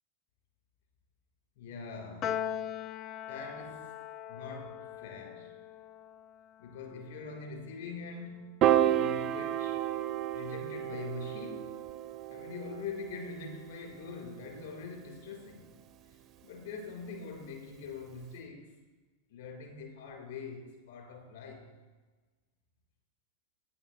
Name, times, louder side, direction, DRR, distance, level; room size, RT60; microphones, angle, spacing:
voice 1, 1.5-2.4 3.3-3.9 4.3-5.5 6.6-9.8 10.3-11.8 12.3-15.7 16.4-18.7 19.3-21.7, left 4 dB, 60° left, 1 dB, 3.3 m, -43 dB
Piano, 2.2-8.7, left 10 dB, 30° left, 0.3 m, -41 dB
Piano 2, 8.6-15.0, right 11 dB, 35° right, 0.4 m, -32 dB
11.5 x 9.6 x 3.0 m, 1.3 s
figure-of-eight pair, 90°, 0 cm